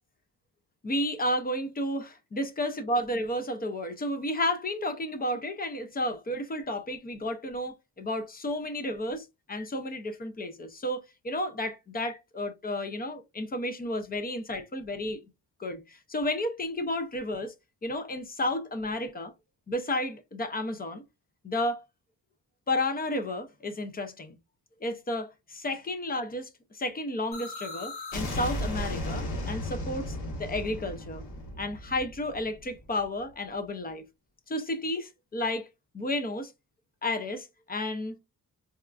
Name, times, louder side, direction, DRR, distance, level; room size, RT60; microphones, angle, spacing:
voice 1, 0.8-15.2 15.6-17.5 17.8-19.3 19.7-21.0 21.4-21.8 22.7-24.4 24.8-31.2 31.6-34.0 34.5-35.7 35.9-36.5 37.0-38.2, left 1 dB, 25° left, 0.4 m, -32 dB
sound 1, 27.3-33.0, left 1 dB, 80° left, 1.4 m, -35 dB
4.1 x 2.3 x 2.3 m
wide cardioid pair, 165°, 37 cm